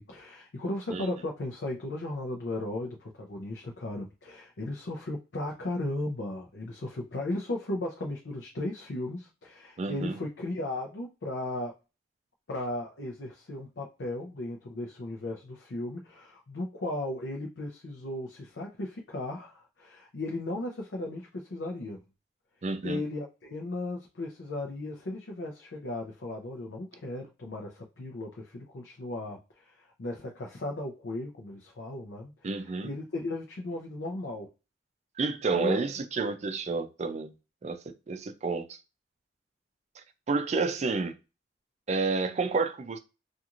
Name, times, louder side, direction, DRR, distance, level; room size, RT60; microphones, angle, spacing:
voice 1, 0.0-11.7 12.5-22.0 22.8-34.5 35.5-35.8, left 2 dB, 80° left, 0.6 m, -36 dB
voice 2, 9.8-10.1 22.6-23.0 32.4-32.9 35.2-37.3 37.6-37.8 38.1-38.6 40.3-41.1 41.9-43.0, right 4 dB, 40° right, 0.4 m, -29 dB
2.9 x 2.4 x 2.4 m
head